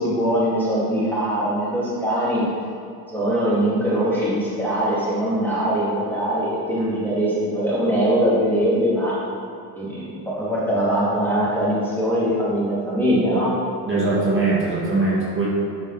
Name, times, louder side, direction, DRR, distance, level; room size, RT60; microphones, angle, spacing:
voice 1, 0.0-2.4 3.1-9.1 9.8-13.5, equal, 5° left, -9 dB, 2.2 m, -22 dB
voice 2, 13.9-15.5, right 3 dB, 30° right, -7 dB, 2.0 m, -21 dB
11.5 x 5.1 x 4.1 m, 2.5 s
cardioid pair, 150°, 42 cm